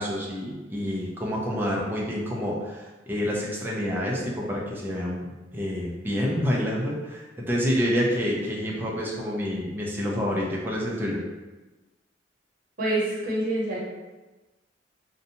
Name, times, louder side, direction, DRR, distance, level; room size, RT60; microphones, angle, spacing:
voice 1, 0.0-5.3 5.5-11.2, equal, 10° right, -4 dB, 0.5 m, -28 dB
voice 2, 12.8-13.8, right 1 dB, 50° right, -6 dB, 0.9 m, -26 dB
2.7 x 2.2 x 2.7 m, 1.2 s
head